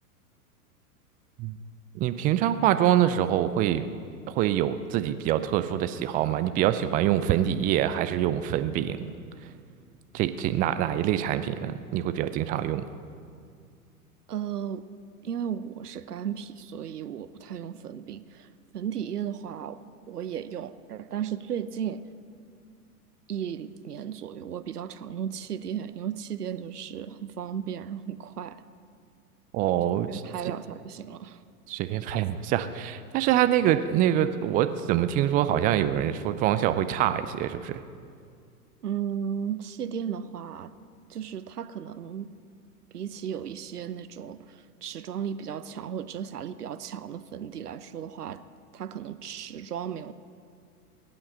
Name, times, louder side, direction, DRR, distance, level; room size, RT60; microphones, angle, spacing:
voice 1, 1.9-3.9 4.3-9.1 10.1-12.8 29.5-30.2 31.7-37.8, right 11 dB, 20° right, 11 dB, 0.4 m, -25 dB
voice 2, 14.3-14.9 15.2-18.5 18.7-19.8 20.1-22.0 23.3-28.6 30.1-31.4 38.8-40.7 41.1-42.3 42.9-48.4 48.7-50.1, right 8 dB, 80° right, 13 dB, 0.9 m, -35 dB
20.5 x 8.8 x 7.8 m, 2.2 s
figure-of-eight pair, 100°, 46 cm